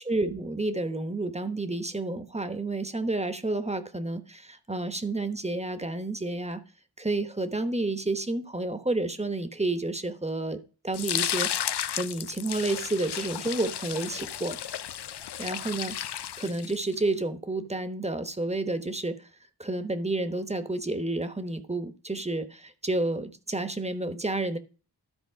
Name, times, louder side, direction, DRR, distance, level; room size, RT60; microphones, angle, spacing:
voice 1, 0.0-6.6 7.0-14.6 15.4-19.3 19.6-24.6, right 2 dB, 15° right, 9 dB, 1.0 m, -30 dB
sound 1, 10.9-17.0, left 10 dB, 85° left, 0.5 m, -33 dB
13.0 x 4.3 x 5.6 m, 0.37 s
wide cardioid pair, 70°, 39 cm